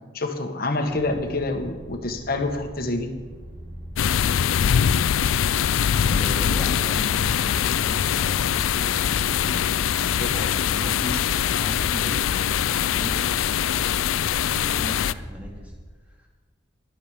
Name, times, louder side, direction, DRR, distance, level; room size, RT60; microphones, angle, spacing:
voice 1, 0.1-3.1 10.2-10.4, left 2 dB, 50° left, 5 dB, 1.5 m, -27 dB
sound 1, 0.9-15.7, equal, 40° right, 2.5 m, -41 dB
sound 2, 4.0-15.1, left 9 dB, 80° left, 0.4 m, -23 dB
voice 2, 6.0-13.4 14.5-15.7 16.1-16.3, equal, 5° right, -2 dB, 2.8 m, -37 dB
22.5 x 7.7 x 5.0 m, 1.4 s
head